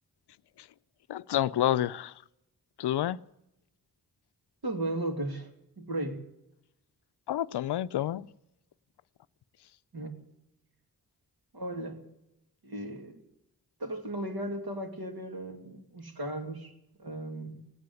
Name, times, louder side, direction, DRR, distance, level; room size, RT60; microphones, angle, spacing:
voice 1, 1.1-2.1 2.8-3.2 7.3-8.3, left 12 dB, 90° left, 0.5 m, -28 dB
voice 2, 4.6-5.5 5.8-6.2 9.9-10.2 11.5-12.0 12.6-13.2 13.8-16.7 17.0-17.6, right 1 dB, 70° right, 2.7 m, -36 dB
17.5 x 9.6 x 8.2 m
cardioid pair, 45°, 39 cm